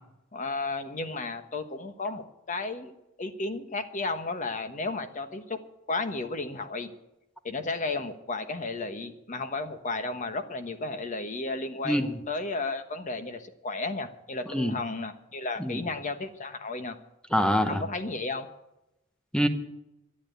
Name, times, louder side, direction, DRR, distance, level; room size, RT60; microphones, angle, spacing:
voice 1, 0.3-2.9 3.2-5.6 5.9-6.9 7.4-17.0 17.7-18.5, left 3 dB, 35° left, 9 dB, 1.1 m, -33 dB
voice 2, 17.3-17.8 19.3-19.5, equal, 5° left, 8 dB, 1.0 m, -25 dB
12.5 x 8.8 x 9.1 m, 0.89 s
head